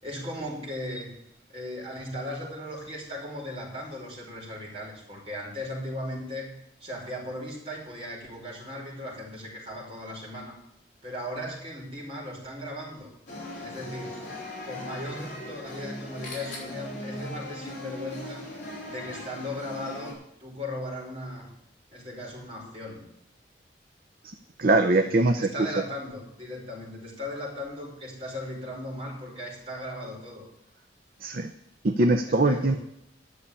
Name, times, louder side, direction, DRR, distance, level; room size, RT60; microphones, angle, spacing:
voice 1, 0.0-1.1 1.5-10.6 11.0-13.1 13.5-18.5 18.8-21.5 21.9-23.0 24.9-30.5 32.3-32.8, left 1 dB, 30° right, -3 dB, 5.1 m, -37 dB
sound 1, 13.3-20.1, left 1 dB, 45° left, 4.4 m, -39 dB
voice 2, 24.6-25.5 31.2-31.5 31.8-32.8, right 2 dB, 50° right, 7 dB, 0.6 m, -22 dB
11.5 x 6.7 x 8.5 m, 0.78 s
head